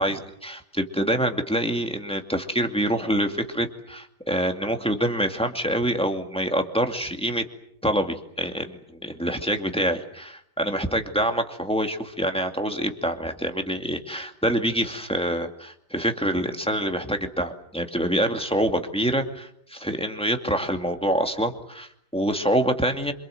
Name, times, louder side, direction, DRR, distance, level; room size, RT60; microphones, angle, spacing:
voice 1, 0.0-7.4 7.8-23.1, right 1 dB, 5° left, 4 dB, 2.2 m, -26 dB
26.5 x 25.5 x 7.8 m, 0.73 s
omnidirectional pair, 1.8 m